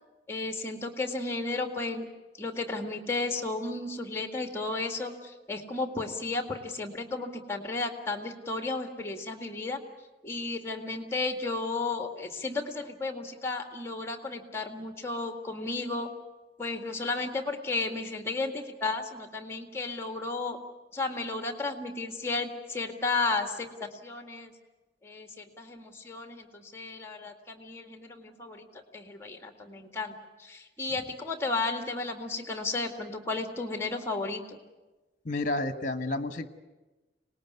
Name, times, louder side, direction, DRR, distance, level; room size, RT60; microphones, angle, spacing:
voice 1, 0.3-2.1 2.4-9.8 10.2-16.1 16.6-20.6 20.9-24.5 25.0-28.7 28.9-34.6, left 3 dB, 15° left, 5 dB, 2.0 m, -33 dB
voice 2, 35.2-36.5, left 2 dB, 45° left, 10 dB, 1.4 m, -30 dB
25.0 x 19.5 x 9.6 m, 1.1 s
head